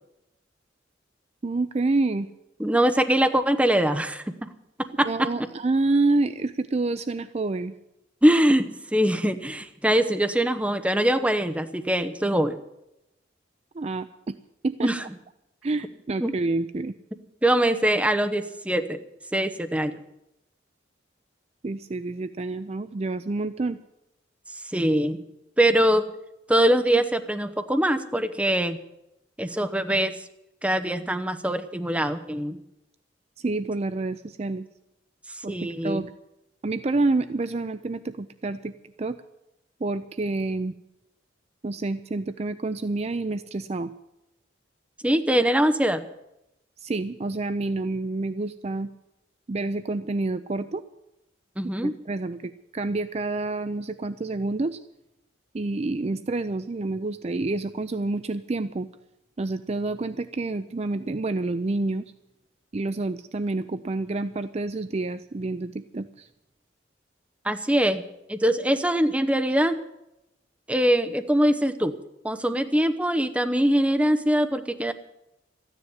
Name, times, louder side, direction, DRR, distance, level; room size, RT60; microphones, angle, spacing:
voice 1, 1.4-2.3 5.1-7.7 13.7-14.3 14.6-14.9 15.6-16.9 21.6-23.8 33.4-34.7 35.4-36.1 36.6-38.7 39.0-39.2 39.8-40.7 41.6-43.9 46.8-48.9 49.5-50.8 51.8-54.8 55.5-58.9 59.4-62.1 62.7-66.3, right 2 dB, 35° right, 12 dB, 0.4 m, -28 dB
voice 2, 2.6-4.5 5.0-5.3 8.2-12.6 14.8-15.0 16.2-16.3 17.4-19.0 19.3-20.0 24.5-25.2 25.6-26.1 26.5-28.8 29.4-30.2 30.6-32.6 35.3-36.0 45.0-46.0 51.6-51.9 67.4-68.0 68.3-69.8 70.7-71.9 72.2-74.9, right 1 dB, 5° right, 8 dB, 0.8 m, -23 dB
13.5 x 9.9 x 9.5 m, 0.89 s
head